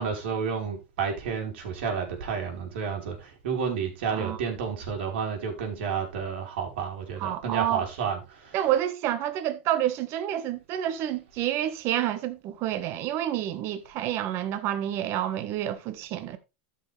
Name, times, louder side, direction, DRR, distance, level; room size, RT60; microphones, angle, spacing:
voice 1, 0.0-8.6, right 6 dB, 80° right, 4.2 m, -31 dB
voice 2, 7.2-7.9 8.5-16.4, right 12 dB, 45° right, 1.4 m, -29 dB
13.5 x 6.1 x 3.4 m
supercardioid pair, 140°, 6 cm